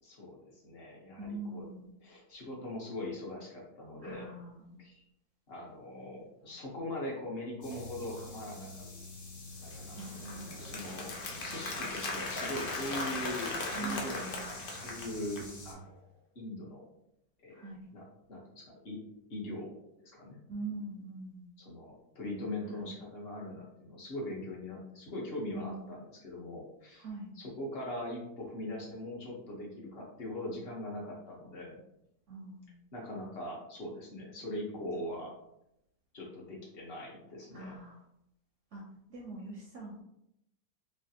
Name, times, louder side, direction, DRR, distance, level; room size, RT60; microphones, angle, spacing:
voice 1, 0.0-1.6 2.0-4.3 4.8-5.0 5.5-8.8 9.6-10.0 10.6-11.1 11.4-16.0 16.3-16.9 17.4-17.7 17.9-19.0 19.3-19.7 20.0-20.4 21.6-27.0 27.3-31.8 32.9-35.3 36.1-37.8, left 1 dB, 45° left, -3 dB, 0.9 m, -41 dB
voice 2, 1.2-1.9 4.0-4.8 6.4-6.6 10.0-10.6 13.7-14.5 17.5-17.9 20.5-21.5 22.7-22.8 25.5-25.9 27.0-27.3 32.3-32.8 37.5-38.0 38.7-38.8 39.1-40.0, right 2 dB, 70° right, -1 dB, 0.8 m, -43 dB
sound 1, 7.6-15.7, left 1 dB, 70° left, 1.3 m, -47 dB
Applause, 9.7-15.5, left 2 dB, 90° left, 0.4 m, -38 dB
3.2 x 2.5 x 2.7 m, 0.80 s
omnidirectional pair, 1.7 m